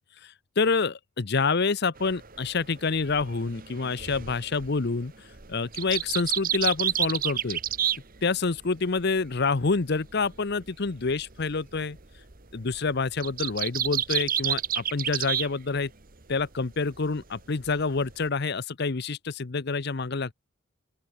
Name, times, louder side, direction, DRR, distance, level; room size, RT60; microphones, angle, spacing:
voice 1, 0.2-5.1 5.5-7.6 8.2-12.0 12.5-15.9 16.3-20.3, left 4 dB, 50° left, 0.8 m, -27 dB
sound 1, 2.0-8.7 9.0-15.5 15.8-16.5 16.8-18.3, right 10 dB, 45° right, 1.5 m, -31 dB
open air
head